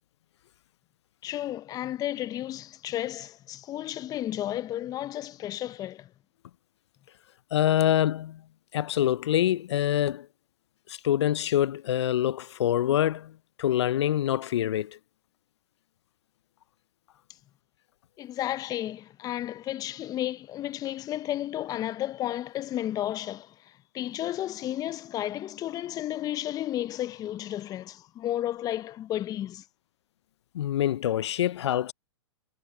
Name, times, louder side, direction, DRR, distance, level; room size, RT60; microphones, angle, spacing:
voice 1, 1.2-6.1 18.2-29.6, left 13 dB, 25° left, 0.7 m, -33 dB
voice 2, 7.5-8.4 8.7-10.3 10.9-15.0 30.5-31.9, left 11 dB, 70° left, 0.6 m, -25 dB
hypercardioid pair, 115°, 15 cm